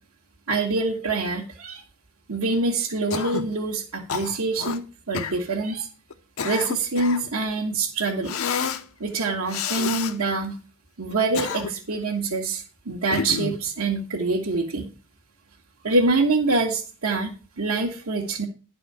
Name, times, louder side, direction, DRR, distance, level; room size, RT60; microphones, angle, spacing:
voice 1, 0.5-1.8 2.3-5.9 6.4-8.4 9.0-10.6 11.0-14.9 15.8-18.5, right 3 dB, 80° right, -3 dB, 1.4 m, -25 dB
Cough, 3.1-3.5 4.1-4.8 5.1-5.4 6.1-7.3 8.3-8.8 9.5-10.1 11.1-11.9 13.1-13.6, left 6 dB, 75° left, 0.7 m, -29 dB
11.0 x 4.2 x 6.6 m, 0.35 s
head